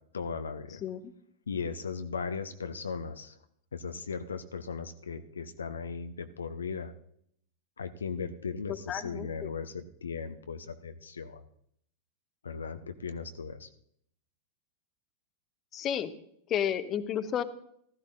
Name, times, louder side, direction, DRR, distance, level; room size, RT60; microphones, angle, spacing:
voice 1, 0.1-0.8 1.5-3.4 3.7-6.9 7.8-11.4 12.4-13.7, left 5 dB, 70° left, 9 dB, 0.6 m, -37 dB
voice 2, 0.8-1.1 8.9-9.5 15.7-16.1 16.5-17.4, left 9 dB, 30° left, 13 dB, 0.7 m, -32 dB
15.0 x 13.5 x 2.6 m, 0.68 s
figure-of-eight pair, 90°, 0 cm